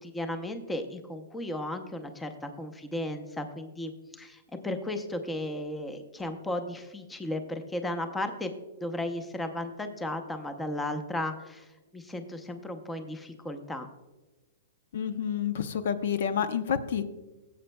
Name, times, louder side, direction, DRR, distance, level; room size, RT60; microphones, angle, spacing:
voice 1, 0.0-8.5 8.8-13.9, left 1 dB, 5° left, 7 dB, 0.7 m, -35 dB
voice 2, 14.9-17.0, left 8 dB, 65° left, 12 dB, 0.7 m, -29 dB
17.0 x 8.1 x 2.2 m, 1.1 s
hypercardioid pair, 155°, 0 cm